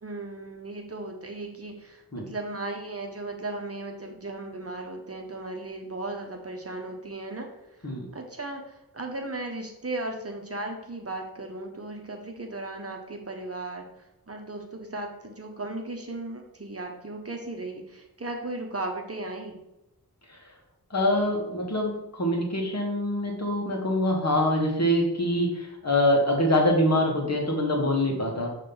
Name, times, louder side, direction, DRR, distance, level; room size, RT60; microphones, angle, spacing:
voice 1, 0.0-7.5 7.8-13.8 14.3-19.6, right 2 dB, 40° right, 2 dB, 1.0 m, -36 dB
voice 2, 20.9-28.5, left 1 dB, 45° left, -1 dB, 1.7 m, -24 dB
5.2 x 3.3 x 5.5 m, 0.89 s
cardioid pair, 45°, 38 cm